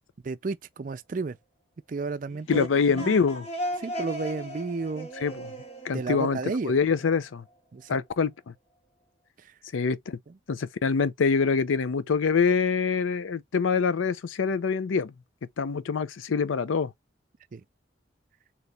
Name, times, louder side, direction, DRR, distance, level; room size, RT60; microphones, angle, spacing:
voice 1, 0.2-1.4 1.9-2.7 2.9-3.2 3.8-5.1 5.9-6.7 7.7-8.0 9.4-9.6 10.3-10.4 17.5-17.6, right 4 dB, 45° right, 0.4 m, -32 dB
sound 1, 2.3-7.0, equal, 30° left, 1.0 m, -37 dB
voice 2, 2.5-3.5 5.2-5.5 5.8-6.4 6.6-7.4 7.9-8.5 9.7-10.2 10.5-15.1 15.6-16.9, left 5 dB, 90° left, 0.5 m, -25 dB
4.0 x 2.9 x 3.3 m
head